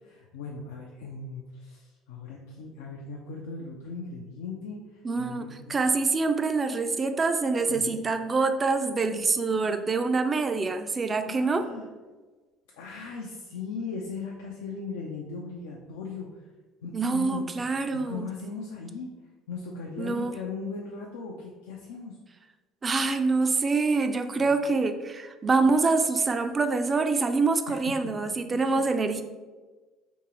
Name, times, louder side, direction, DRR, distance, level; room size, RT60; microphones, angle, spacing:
voice 1, 0.0-5.8 7.7-7.9 11.3-11.9 12.8-16.3 16.8-19.1 19.5-22.2 24.3-24.5 28.0-28.8, left 4 dB, 75° left, -1 dB, 0.4 m, -38 dB
voice 2, 5.0-11.7 16.9-18.3 20.0-20.3 22.8-29.2, right 4 dB, 30° right, 8 dB, 0.3 m, -25 dB
3.5 x 3.0 x 2.9 m, 1.3 s
hypercardioid pair, 60°, 0 cm